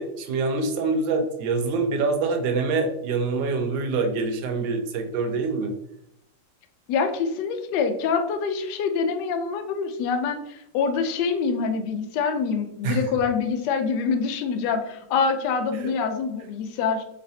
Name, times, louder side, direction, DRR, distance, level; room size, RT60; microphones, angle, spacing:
voice 1, 0.0-5.8 12.8-13.0 15.7-15.9, right 4 dB, 75° right, 5 dB, 1.4 m, -25 dB
voice 2, 6.9-17.0, left 5 dB, 75° left, 6 dB, 1.1 m, -25 dB
4.1 x 3.2 x 2.7 m, 0.77 s
omnidirectional pair, 2.1 m